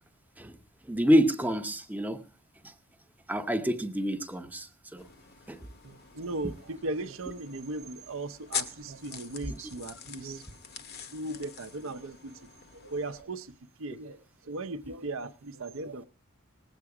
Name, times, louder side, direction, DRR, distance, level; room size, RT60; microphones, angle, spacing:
voice 1, 0.8-2.2 2.6-2.7 3.3-5.1 5.5-5.6 9.5-9.6, equal, 10° right, 0.7 m, -27 dB
sound 1, 5.0-13.2, left 7 dB, 50° left, 1.0 m, -43 dB
voice 2, 5.8-10.5 10.9-13.5 13.8-16.1, right 2 dB, 65° right, 0.7 m, -38 dB
19.0 x 8.2 x 4.8 m
head